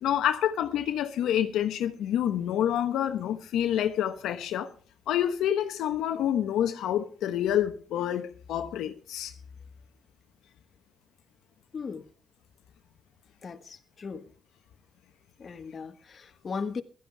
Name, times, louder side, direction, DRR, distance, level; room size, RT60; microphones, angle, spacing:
voice 1, 0.0-4.7 5.1-9.3, left 10 dB, 80° left, 1.1 m, -28 dB
voice 2, 11.7-12.1 13.4-14.3 15.4-16.8, left 5 dB, 40° left, 1.5 m, -37 dB
16.0 x 13.0 x 3.5 m
cardioid pair, 90°, 0 cm